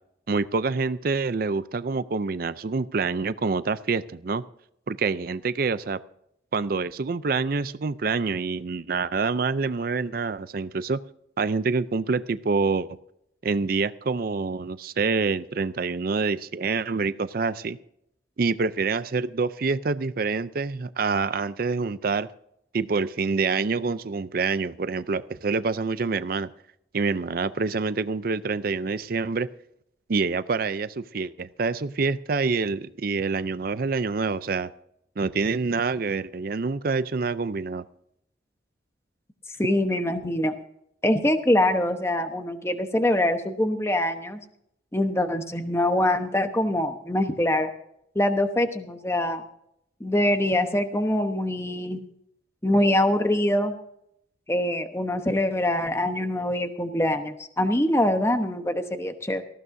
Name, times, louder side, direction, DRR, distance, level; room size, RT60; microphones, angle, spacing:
voice 1, 0.3-4.4 4.9-6.0 6.5-11.0 11.4-12.9 13.4-17.8 18.4-22.3 22.7-26.5 26.9-29.5 30.1-34.7 35.2-37.8, right 4 dB, 55° right, 14 dB, 0.5 m, -26 dB
voice 2, 39.6-40.5 41.0-44.4 44.9-47.7 48.1-49.4 50.0-52.0 52.6-53.7 54.5-59.4, left 1 dB, 15° left, 7 dB, 1.0 m, -24 dB
19.0 x 15.0 x 2.7 m, 0.74 s
head